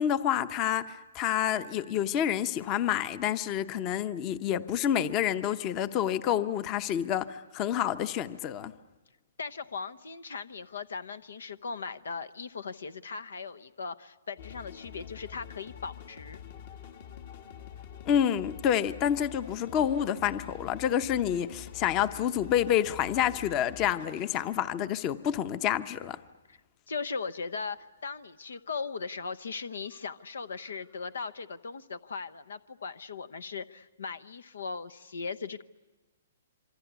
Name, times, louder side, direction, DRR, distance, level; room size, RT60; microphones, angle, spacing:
voice 1, 0.0-8.7 18.0-26.2, left 10 dB, 30° left, 0.8 m, -28 dB
voice 2, 9.4-16.4 26.5-26.6 26.9-35.6, left 5 dB, 85° left, 0.8 m, -38 dB
sound 1, 14.4-25.6 27.2-27.8 28.1-28.2 28.5-31.3, left 8 dB, 55° left, 1.9 m, -47 dB
26.5 x 24.5 x 8.1 m
hypercardioid pair, 140°, 0 cm